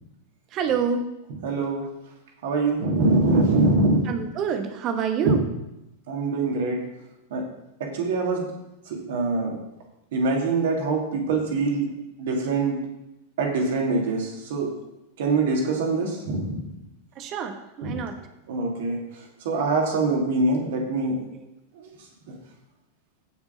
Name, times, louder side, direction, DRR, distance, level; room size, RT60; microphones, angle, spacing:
voice 1, 0.5-1.0 4.1-5.4 17.2-18.1, right 6 dB, 35° right, 7 dB, 1.4 m, -27 dB
voice 2, 1.4-1.8 2.4-4.0 5.2-5.3 6.1-6.8 7.3-7.4 7.9-8.5 8.9-9.6 10.1-11.9 12.2-12.8 13.4-14.7 15.2-16.7 17.8-18.0 18.5-19.0 19.4-21.1 21.8-21.9, right 3 dB, 55° right, 0 dB, 2.8 m, -23 dB
16.5 x 6.1 x 4.0 m, 0.91 s
figure-of-eight pair, 90°, 0 cm